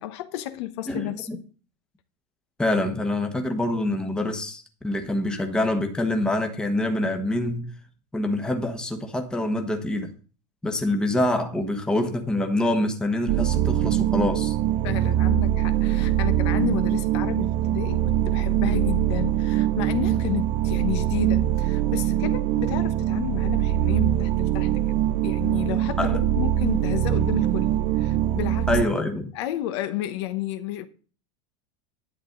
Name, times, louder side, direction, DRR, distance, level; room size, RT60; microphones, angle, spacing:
voice 1, 0.0-1.4 14.8-24.9 25.2-28.7 29.3-30.9, left 14 dB, 60° left, 1.0 m, -32 dB
voice 2, 0.9-1.4 2.6-7.7 8.1-10.1 10.6-14.6 26.0-26.2 28.7-29.3, left 1 dB, 5° left, 1.2 m, -25 dB
sound 1, 13.3-28.9, right 12 dB, 30° right, 0.4 m, -23 dB
11.0 x 9.2 x 3.9 m
supercardioid pair, 170°, 16 cm